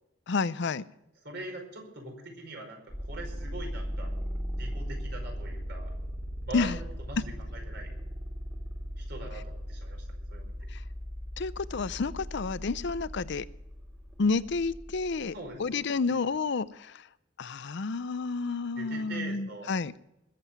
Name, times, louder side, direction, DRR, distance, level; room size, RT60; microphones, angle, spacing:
voice 1, 0.3-0.8 6.5-6.8 11.4-13.4 14.2-15.3 15.6-16.7 17.4-19.9, left 4 dB, 65° left, 0.6 m, -30 dB
voice 2, 1.2-5.9 6.4-7.9 9.0-10.5 15.3-15.9 18.7-19.7, right 2 dB, 60° right, 5.1 m, -43 dB
sound 1, 2.9-15.6, equal, 10° right, 2.3 m, -38 dB
21.0 x 7.7 x 7.1 m
head